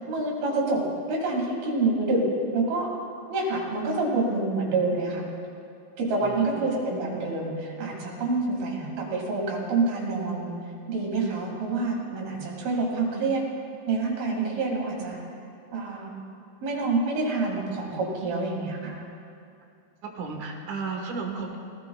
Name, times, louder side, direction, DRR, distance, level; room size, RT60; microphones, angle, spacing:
voice 1, 0.1-0.8 1.1-2.2 2.5-2.9 3.3-5.2 6.0-10.5 10.9-13.4 13.9-15.2 15.7-16.1 16.6-19.0, right 3 dB, 85° right, -2 dB, 4.1 m, -27 dB
voice 2, 6.2-6.7 20.0-21.6, right 4 dB, 65° right, 1 dB, 2.6 m, -34 dB
20.0 x 17.0 x 2.3 m, 2.5 s
omnidirectional pair, 4.1 m